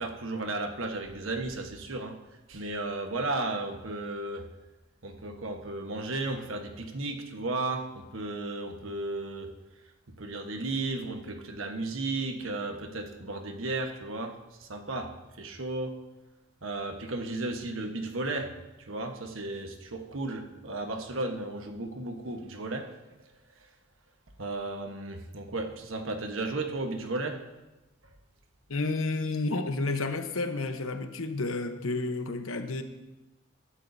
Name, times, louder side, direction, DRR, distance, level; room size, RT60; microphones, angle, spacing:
voice 1, 0.0-2.2 2.5-4.5 5.0-9.5 10.1-16.0 16.6-22.9 24.4-27.4, right 2 dB, 70° right, 5 dB, 1.3 m, -34 dB
voice 2, 28.7-32.8, left 3 dB, 90° left, 8 dB, 1.0 m, -31 dB
20.5 x 11.0 x 2.8 m, 1.0 s
head